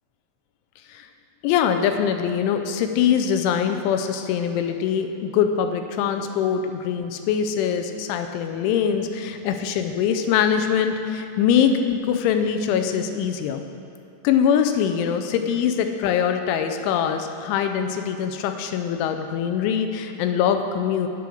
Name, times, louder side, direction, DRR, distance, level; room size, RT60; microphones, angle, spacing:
voice 1, 1.4-13.6 14.2-21.1, left 8 dB, 85° left, 6 dB, 3.0 m, -23 dB
8.4 x 8.2 x 6.2 m, 2.8 s
omnidirectional pair, 5.3 m